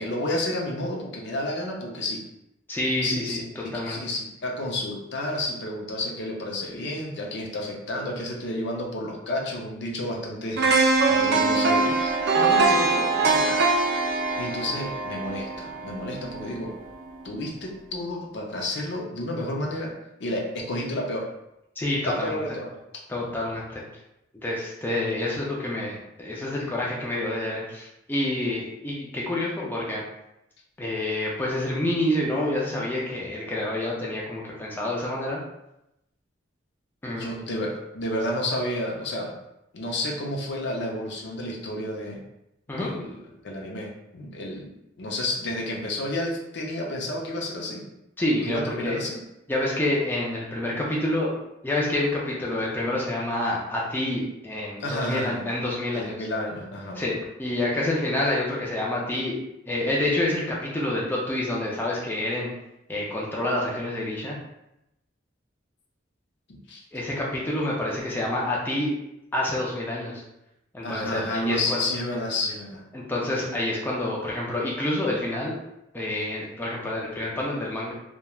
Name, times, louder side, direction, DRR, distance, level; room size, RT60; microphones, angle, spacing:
voice 1, 0.0-2.2 3.0-3.4 3.9-13.7 14.4-16.8 17.2-19.9 20.2-21.3 22.0-23.0 37.2-39.3 39.7-42.2 42.7-43.2 43.4-44.7 45.0-47.8 48.5-49.2 54.8-55.4 55.9-57.0 66.5-66.8 70.8-72.8, left 1 dB, 60° left, -1 dB, 0.5 m, -31 dB
voice 2, 2.7-3.4 3.7-4.0 21.8-22.4 23.1-23.8 24.3-30.0 30.8-35.4 37.0-37.3 42.7-42.9 48.2-49.0 49.5-51.3 51.6-56.2 56.9-59.4 59.7-62.5 62.9-64.4 66.9-68.9 69.3-70.2 70.7-71.8 72.9-75.5 75.9-77.9, left 1 dB, 10° left, -4 dB, 0.4 m, -28 dB
sound 1, 10.6-16.6 17.0-17.1, right 3 dB, 60° right, 0.4 m, -23 dB
3.0 x 2.2 x 2.3 m, 0.86 s
head